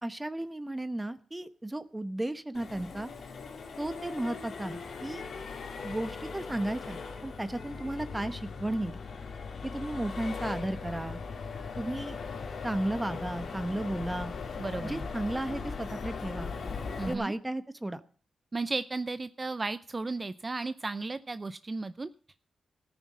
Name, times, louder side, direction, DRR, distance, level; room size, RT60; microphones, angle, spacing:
voice 1, 0.0-3.1 3.8-5.2 5.8-9.0 9.6-11.2 11.8-12.2 12.6-14.3 14.8-16.5 17.1-18.0, right 1 dB, 15° right, 11 dB, 1.0 m, -34 dB
Accelerating revving vroom, 2.5-17.1, left 5 dB, 70° left, 2.6 m, -39 dB
voice 2, 14.6-15.1 17.0-17.3 18.5-22.1, right 3 dB, 35° right, 13 dB, 0.6 m, -34 dB
14.0 x 9.6 x 6.2 m, 0.43 s
cardioid pair, 55°, 0 cm